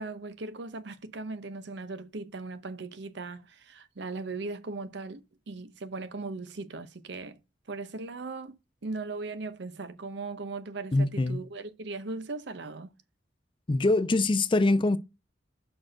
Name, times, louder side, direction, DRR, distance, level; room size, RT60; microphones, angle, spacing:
voice 1, 0.0-5.2 5.5-7.4 7.7-8.6 8.8-12.9, right 3 dB, 65° right, 0.7 m, -38 dB
voice 2, 10.9-11.4 13.7-15.0, left 2 dB, 25° left, 0.5 m, -24 dB
6.0 x 4.4 x 6.3 m
head